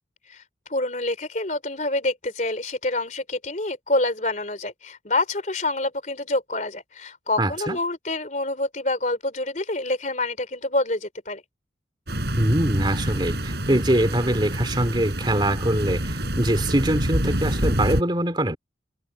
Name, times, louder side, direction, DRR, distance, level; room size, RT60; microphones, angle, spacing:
voice 1, 0.7-11.4, left 2 dB, 40° left, 3.7 m, -27 dB
voice 2, 7.4-7.8 12.4-18.6, right 1 dB, 25° right, 2.9 m, -23 dB
sound 1, 12.1-18.0, right 1 dB, 60° right, 5.8 m, -26 dB
head